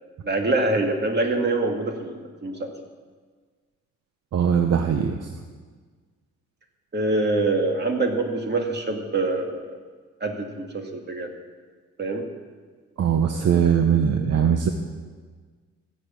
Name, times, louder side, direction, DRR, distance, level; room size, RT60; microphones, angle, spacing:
voice 1, 0.2-2.7 6.9-9.8 10.2-11.3 12.0-12.3 13.3-13.6, right 2 dB, 35° right, 3 dB, 2.3 m, -25 dB
voice 2, 4.3-5.3 13.0-14.7, right 8 dB, 55° right, 5 dB, 1.0 m, -21 dB
15.5 x 6.7 x 8.7 m, 1.5 s
cardioid pair, 90°, 30 cm